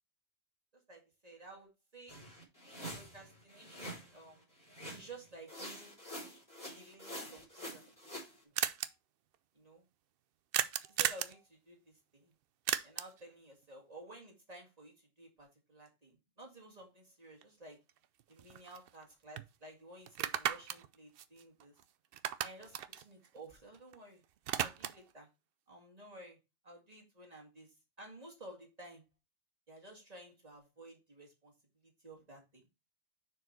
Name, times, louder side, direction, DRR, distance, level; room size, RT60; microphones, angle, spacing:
voice 1, 0.7-2.2 2.9-4.5 4.9-6.0 6.7-8.1 9.6-9.9 11.0-12.3 12.8-17.8 18.3-21.7 22.4-24.2 24.6-25.3 25.7-26.4 26.6-27.7 28.0-29.0 29.7-31.5 32.0-32.4, right 2 dB, 40° right, 2.0 m, -54 dB
sound 1, 2.1-4.2 4.7-5.2 5.5-8.3, equal, 20° left, 3.3 m, -47 dB
sound 2, 7.6-7.7 7.9-8.0 8.2-8.3 8.6-8.9 10.5-11.4 12.7-13.2 17.4-17.5 17.9-19.0 19.4-19.5 20.1-21.8 22.1-24.0 24.2-25.1, right 10 dB, 70° right, 0.7 m, -36 dB
6.5 x 4.6 x 4.4 m
omnidirectional pair, 1.0 m